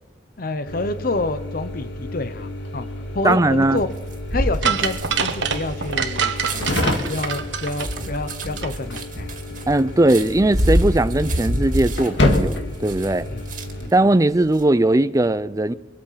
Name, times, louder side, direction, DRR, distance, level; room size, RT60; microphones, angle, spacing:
voice 1, 0.4-2.9 3.1-3.9 4.3-6.7 7.1-9.3 13.3-13.4 13.8-13.9, left 2 dB, 50° left, 0.7 m, -28 dB
sound 1, 0.7-13.9, left 1 dB, 75° left, 1.9 m, -29 dB
voice 2, 3.2-3.8 9.7-13.3 13.9-15.7, right 2 dB, 20° right, 0.5 m, -19 dB
sound 2, 3.8-13.9 14.3-14.6, equal, 45° right, 2.1 m, -27 dB
sound 3, 4.6-8.7 9.0-9.1, right 6 dB, 85° right, 1.3 m, -25 dB
24.5 x 8.7 x 5.8 m
head